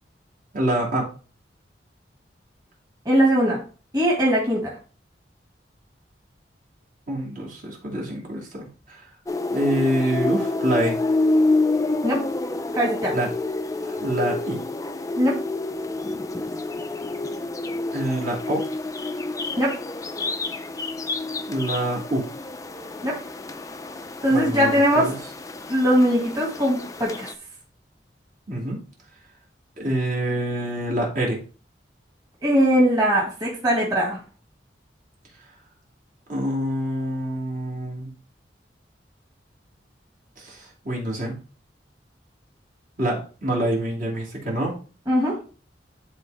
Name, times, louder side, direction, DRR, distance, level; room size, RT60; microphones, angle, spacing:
voice 1, 0.5-1.1 7.1-9.1 9.5-11.0 13.1-13.3 13.9-14.6 17.9-18.6 21.5-22.2 24.3-25.2 28.5-28.8 29.8-31.4 36.3-38.1 40.4-41.4 43.0-44.7, right 1 dB, 50° right, -3 dB, 2.6 m, -26 dB
voice 2, 3.1-3.6 3.9-4.7 12.0-12.2 12.8-13.2 15.1-15.4 19.6-19.7 23.0-23.2 24.2-25.1 25.7-27.3 32.4-34.2 45.1-45.3, equal, 20° right, -4 dB, 2.0 m, -20 dB
sound 1, 9.3-27.3, left 2 dB, 20° left, 0.5 m, -28 dB
11.5 x 3.9 x 3.4 m, 0.38 s
head